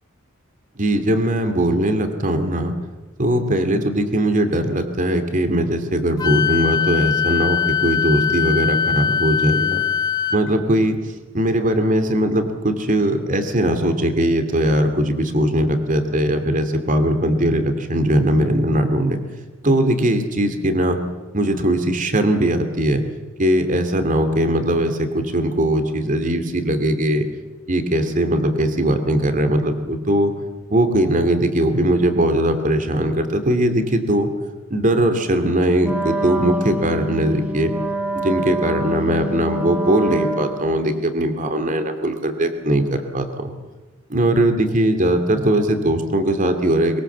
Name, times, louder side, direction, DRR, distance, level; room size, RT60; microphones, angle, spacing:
voice 1, 0.8-2.7 3.2-9.8 10.3-11.0 11.3-19.2 19.6-21.0 21.3-23.1 23.4-27.3 27.7-30.3 30.7-34.3 34.7-37.7 38.1-43.5 44.1-47.0, right 1 dB, 40° right, 8 dB, 2.6 m, -20 dB
Wind instrument woodwind instrument, 6.2-10.4, left 7 dB, 20° left, 1.2 m, -21 dB
Wind instrument woodwind instrument 2, 35.8-40.9, equal, 5° right, 1.7 m, -26 dB
23.0 x 22.5 x 7.4 m, 1.2 s
head